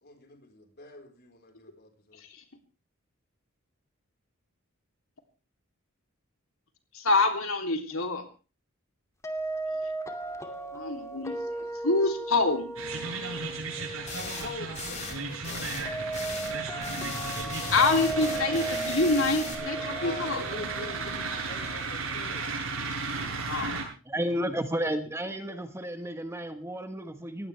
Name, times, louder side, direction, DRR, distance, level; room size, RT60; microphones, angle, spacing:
voice 1, 0.0-2.2 14.1-16.1 19.9-22.5, left 3 dB, 50° left, 4 dB, 4.6 m, -44 dB
voice 2, 6.9-8.2 10.7-12.7 17.7-20.5 23.5-23.8, left 3 dB, 75° left, 4 dB, 3.2 m, -26 dB
sound 1, 9.2-22.1, right 2 dB, 15° left, 2.6 m, -37 dB
sound 2, 12.8-23.8, right 4 dB, 80° right, 7.8 m, -35 dB
sound 3, 14.1-14.5 14.7-15.2 15.4-16.6 16.8-19.5, left 4 dB, 35° left, 4.6 m, -38 dB
voice 3, 24.0-27.5, equal, 15° right, 7 dB, 1.5 m, -32 dB
20.5 x 16.5 x 3.5 m, 0.35 s
head